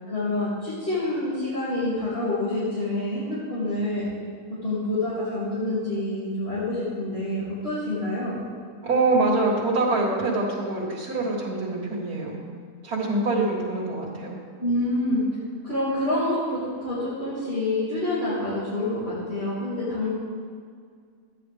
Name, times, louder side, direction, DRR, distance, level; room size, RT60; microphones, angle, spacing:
voice 1, 0.1-4.1 4.6-8.4 14.6-15.2 15.6-20.1, left 1 dB, 40° left, -12 dB, 2.9 m, -27 dB
voice 2, 8.8-12.4 12.8-14.4, right 2 dB, 85° right, -5 dB, 2.2 m, -25 dB
13.0 x 9.5 x 3.5 m, 2.1 s
omnidirectional pair, 1.6 m